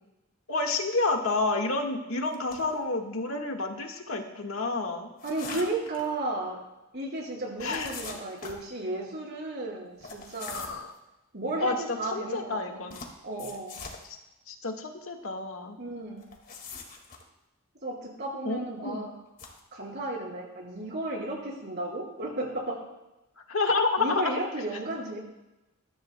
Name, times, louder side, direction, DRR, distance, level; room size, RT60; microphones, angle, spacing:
voice 1, 0.5-5.1 5.5-5.7 7.6-8.0 10.5-10.9 11.6-11.7 12.1-12.9 14.5-15.8 18.4-19.1 23.5-24.4, left 3 dB, 80° left, 3 dB, 1.6 m, -29 dB
sound 1, 2.3-2.8 5.2-6.1 7.6-8.6 10.0-10.9 12.9-14.0 16.2-17.2 19.3-19.6, left 4 dB, 45° left, 1.9 m, -42 dB
voice 2, 5.2-6.6 6.9-10.7 11.3-12.9 13.2-13.8 15.8-16.2 17.8-19.1 19.7-22.8 24.0-25.2, right 2 dB, 55° right, -2 dB, 4.6 m, -34 dB
21.5 x 13.5 x 2.2 m, 0.98 s
head